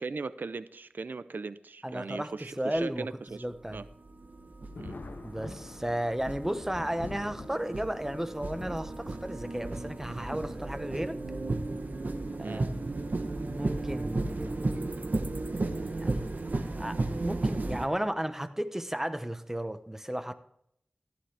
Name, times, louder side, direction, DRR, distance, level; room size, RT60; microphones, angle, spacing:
voice 1, 0.0-3.4 3.7-3.8 4.8-5.0 12.4-12.7, right 4 dB, 90° right, 14 dB, 0.4 m, -38 dB
voice 2, 1.8-3.1 3.4-3.8 5.2-11.2 12.4-12.8 13.4-14.6 16.0-16.2 16.8-20.3, right 1 dB, 10° right, 10 dB, 0.9 m, -34 dB
sound 1, 2.8-2.9 3.6-17.9, right 2 dB, 65° right, 1.0 m, -34 dB
Thunder, 4.7-11.8 12.8-12.9 14.3-14.6 15.0-15.1 17.0-17.2 17.9-18.3, left 3 dB, 85° left, 0.8 m, -48 dB
14.5 x 11.5 x 3.4 m, 0.72 s
wide cardioid pair, 70°, 3 cm